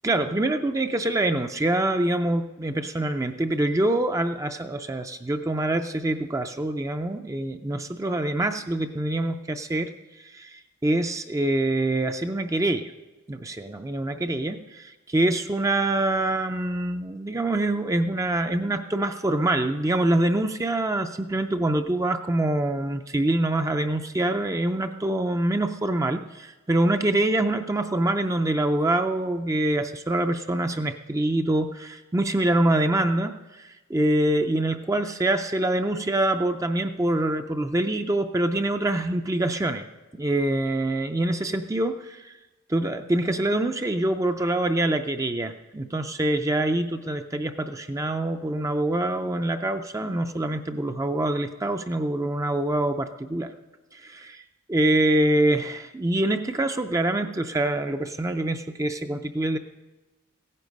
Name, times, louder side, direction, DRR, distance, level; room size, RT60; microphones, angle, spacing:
voice 1, 0.0-9.9 10.2-12.9 13.3-39.9 40.1-42.4 42.7-53.5 53.9-54.4 54.7-59.6, right 1 dB, 15° right, 7 dB, 0.4 m, -25 dB
16.0 x 9.8 x 5.2 m, 1.1 s
head